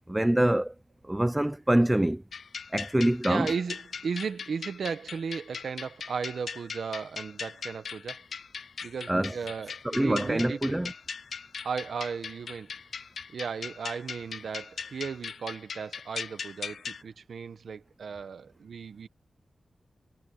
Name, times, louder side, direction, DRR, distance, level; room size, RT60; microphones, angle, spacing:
voice 1, 0.1-0.7 1.1-2.2 2.7-3.5 9.1-9.3 9.8-10.9, right 1 dB, 10° right, 0.5 m, -25 dB
sound 1, 2.3-17.0, left 6 dB, 75° left, 0.7 m, -39 dB
voice 2, 3.3-8.2 8.8-10.8 11.6-12.7 13.3-19.1, right 6 dB, 80° right, 1.2 m, -35 dB
wide cardioid pair, 155°, 0 cm